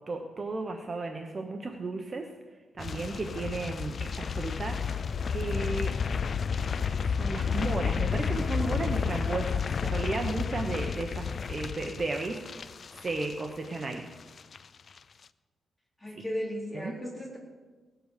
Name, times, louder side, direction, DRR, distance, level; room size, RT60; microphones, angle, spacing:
voice 1, 0.0-2.3 2.7-5.9 6.9-12.7 13.0-14.1 16.1-16.2 16.7-16.9, right 3 dB, 30° right, 3 dB, 1.0 m, -34 dB
sound 1, 2.8-13.9 14.2-14.6 14.9-15.0, left 6 dB, 45° left, 0.4 m, -31 dB
voice 2, 16.0-17.4, equal, 5° left, -4 dB, 3.9 m, -35 dB
18.0 x 7.9 x 6.7 m, 1.4 s
cardioid pair, 130°, 0 cm